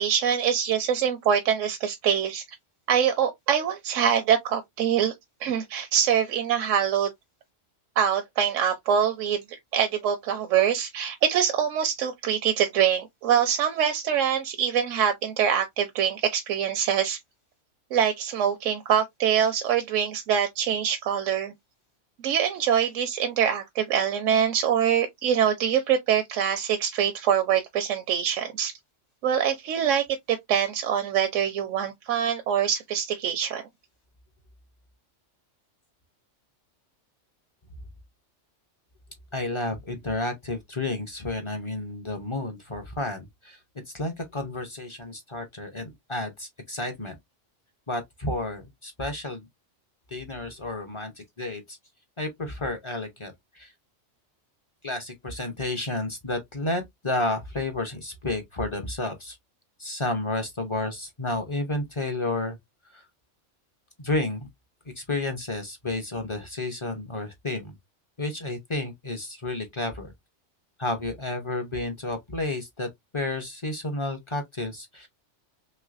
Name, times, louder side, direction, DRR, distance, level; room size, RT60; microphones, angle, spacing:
voice 1, 0.0-2.4 2.9-5.1 5.4-7.1 8.0-17.2 17.9-21.5 22.2-28.7 29.2-33.6, right 8 dB, 80° right, 0.9 m, -24 dB
voice 2, 39.3-43.6 43.9-47.1 47.9-49.5 50.1-51.1 51.4-51.8 52.2-53.7 54.8-59.4 59.8-62.6 62.9-63.0 64.0-64.4 65.0-67.8 68.2-70.1 70.8-72.9 73.1-75.1, left 2 dB, 30° left, 0.6 m, -31 dB
3.2 x 3.1 x 2.4 m
omnidirectional pair, 1.3 m